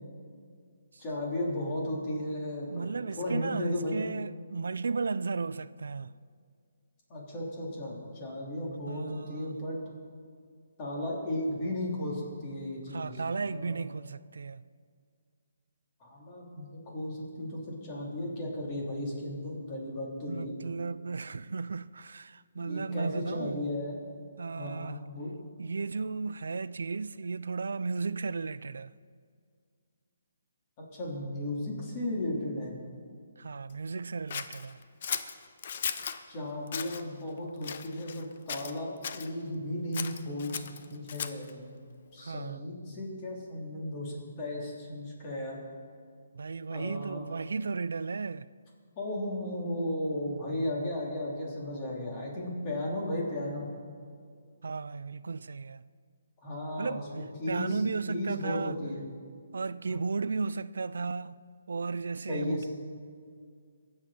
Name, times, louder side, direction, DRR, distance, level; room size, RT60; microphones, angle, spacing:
voice 1, 1.0-2.8 3.2-4.0 7.1-9.8 10.8-13.1 13.5-13.8 16.0-20.6 22.6-24.0 24.6-25.3 31.0-32.7 36.3-41.8 42.1-45.6 46.7-47.3 49.0-53.7 56.4-57.8 58.1-59.0 59.9-60.0 62.3-62.7, left 1 dB, 25° left, 3.5 m, -35 dB
voice 2, 2.7-6.1 8.9-9.6 12.9-14.6 20.3-23.7 24.4-25.0 25.6-28.9 33.4-34.8 42.2-42.7 46.3-48.5 54.6-55.8 56.8-57.1 57.5-58.8 59.5-62.7, right 4 dB, 80° right, 0.3 m, -35 dB
Scissors, 34.3-36.2 36.7-37.0 37.6-38.2 38.5-39.3 39.9-41.5, left 7 dB, 50° left, 0.7 m, -36 dB
22.5 x 7.9 x 4.3 m
hypercardioid pair, 160°, 0 cm